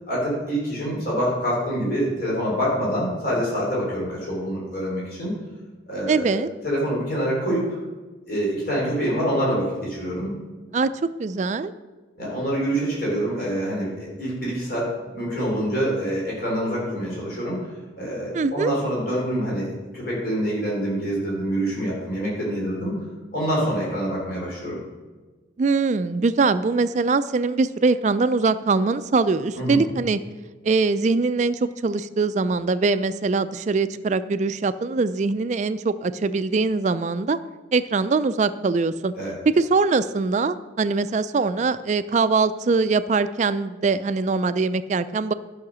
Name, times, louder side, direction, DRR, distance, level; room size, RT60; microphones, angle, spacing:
voice 1, 0.1-5.3 5.9-7.8 8.3-10.3 12.2-17.7 18.0-23.0 23.3-24.8 29.6-29.8 39.2-39.4, equal, 50° left, -5 dB, 3.8 m, -26 dB
voice 2, 6.1-6.5 10.7-10.9 11.2-11.7 18.3-18.7 25.6-30.2 30.6-37.4 37.7-39.1 39.5-45.3, right 4 dB, 40° right, 13 dB, 0.3 m, -22 dB
11.5 x 5.7 x 6.1 m, 1.3 s
head